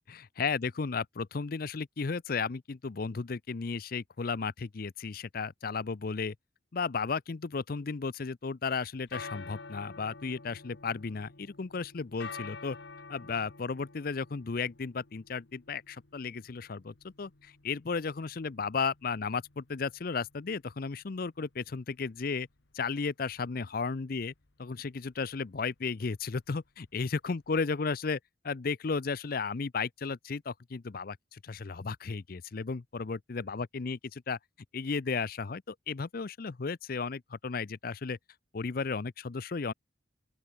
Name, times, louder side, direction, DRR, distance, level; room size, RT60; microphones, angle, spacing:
voice 1, 0.1-6.3 6.7-12.8 13.1-22.5 22.7-24.3 24.6-28.2 28.4-34.4 34.7-38.2 38.5-39.7, left 5 dB, 50° left, 0.5 m, -34 dB
sound 1, 9.0-27.8, left 4 dB, 65° left, 1.5 m, -50 dB
open air
head